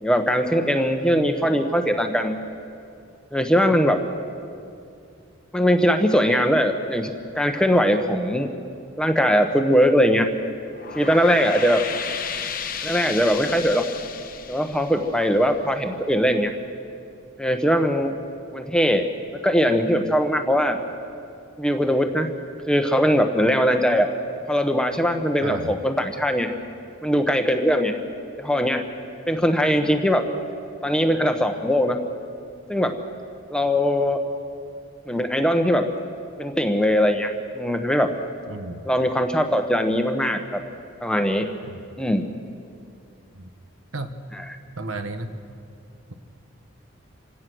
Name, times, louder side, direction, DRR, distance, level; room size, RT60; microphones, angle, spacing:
voice 1, 0.0-2.4 3.3-4.0 5.5-8.5 9.0-10.3 10.9-11.8 12.8-13.8 14.5-16.5 17.4-18.1 18.5-19.1 19.4-20.8 21.6-22.3 22.7-24.1 24.5-26.5 27.0-27.9 28.4-28.8 29.3-30.2 30.8-32.0 32.7-32.9 33.5-34.2 35.1-35.9 36.4-37.3 37.5-38.1 38.8-40.6 41.0-41.5 42.0-42.3 44.3-44.6, equal, 5° left, 5 dB, 1.0 m, -20 dB
sound 1, 10.6-15.9, left 7 dB, 40° left, 1.0 m, -33 dB
voice 2, 25.4-25.7 38.5-38.8 41.6-41.7 43.4-43.5 43.9-44.2 44.8-45.3, right 2 dB, 75° right, 8 dB, 1.3 m, -32 dB
27.0 x 17.0 x 6.3 m, 2.5 s
head